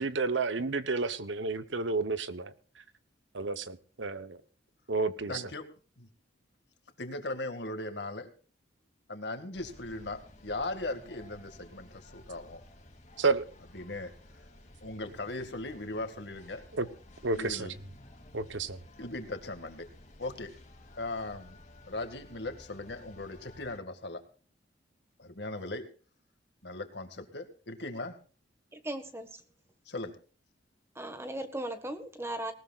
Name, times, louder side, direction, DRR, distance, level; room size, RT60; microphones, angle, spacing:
voice 1, 0.0-2.5 3.3-4.4 4.9-5.3 13.2-13.5 16.8-16.9 17.2-17.7 18.3-18.8, right 3 dB, 80° right, 12 dB, 1.0 m, -30 dB
voice 2, 5.3-5.7 6.0-6.1 7.0-8.3 9.1-12.6 13.7-14.5 14.8-16.6 17.4-17.7 19.0-19.9 20.2-20.5 21.0-21.6 21.9-24.2 25.2-25.9 26.6-28.2 29.9-30.2, left 2 dB, 60° left, 7 dB, 2.1 m, -38 dB
sound 1, 9.5-23.8, left 1 dB, 40° left, 2.6 m, -54 dB
voice 3, 28.7-29.4 30.9-32.5, right 1 dB, 15° right, 8 dB, 1.6 m, -37 dB
19.5 x 19.0 x 2.5 m, 0.39 s
head